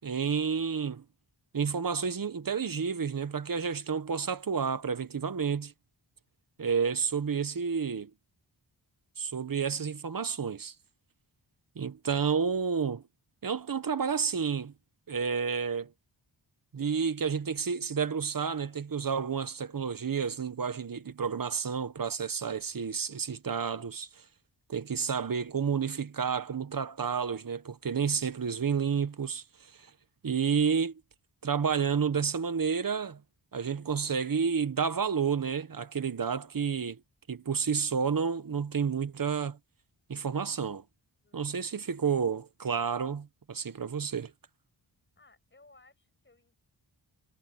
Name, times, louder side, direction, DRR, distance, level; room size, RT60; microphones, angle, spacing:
voice 1, 0.0-1.0 1.5-5.7 6.6-8.1 9.2-10.7 11.7-13.0 13.4-14.7 15.1-15.9 16.7-24.1 24.7-29.9 30.2-30.9 31.4-33.2 33.5-37.0 37.3-39.6 40.1-40.8 41.3-44.3, right 6 dB, 45° right, 1.2 m, -30 dB
voice 2, 45.2-46.6, left 3 dB, 25° left, 6.5 m, -60 dB
wide cardioid pair, 135°, 45 cm